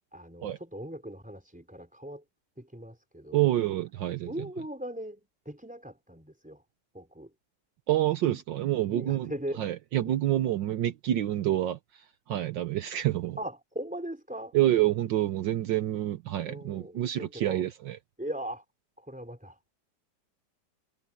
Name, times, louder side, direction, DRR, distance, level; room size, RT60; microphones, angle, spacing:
voice 1, 0.1-2.2 2.6-3.4 4.3-6.6 6.9-7.3 8.3-8.4 8.8-9.6 13.4-14.6 16.4-17.6 18.2-18.6 19.0-19.6, right 1 dB, 5° right, 4.4 m, -39 dB
voice 2, 3.3-4.3 7.9-9.3 9.6-13.4 14.5-18.0, right 13 dB, 70° right, 1.5 m, -28 dB
omnidirectional pair, 2.1 m